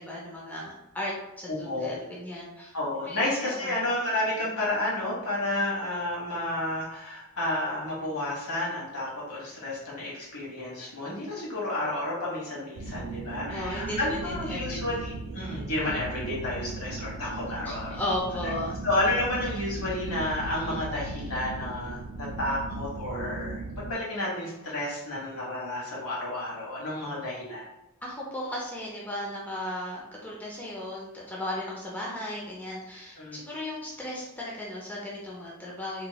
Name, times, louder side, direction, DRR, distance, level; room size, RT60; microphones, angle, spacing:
voice 1, 0.0-2.7 3.0-3.8 13.5-15.0 17.6-18.8 28.0-36.1, left 1 dB, 10° left, -4 dB, 0.4 m, -36 dB
voice 2, 1.5-2.0 2.7-17.9 18.8-27.6 33.2-33.4, left 1 dB, 70° left, -5 dB, 1.3 m, -31 dB
sound 1, 12.8-23.9, right 2 dB, 55° right, 0.4 m, -37 dB
3.0 x 2.9 x 2.2 m, 0.91 s
head